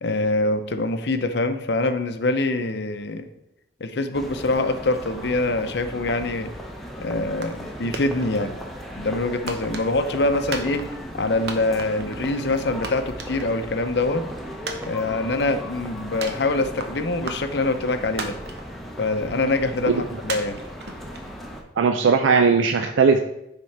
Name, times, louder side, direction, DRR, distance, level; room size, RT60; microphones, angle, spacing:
voice 1, 0.0-3.3 3.8-6.5 7.0-8.5 9.0-10.8 11.1-14.2 14.8-18.4 19.0-20.6, left 2 dB, 60° left, 8 dB, 0.6 m, -24 dB
sound 1, 4.1-21.6, equal, ahead, 0.7 m, -37 dB
sound 2, 7.4-7.7 7.9-8.6 9.5-10.2 10.5-11.2 11.5-12.3 12.6-12.7 12.8-13.8 14.1-14.2 14.7-15.4 16.2-16.9 17.3-17.8 18.2-18.9 19.3-19.4 20.3-21.6, right 3 dB, 60° right, 0.8 m, -34 dB
voice 2, 21.8-23.2, right 5 dB, 90° right, 6 dB, 0.4 m, -18 dB
9.7 x 3.7 x 4.3 m, 0.87 s
head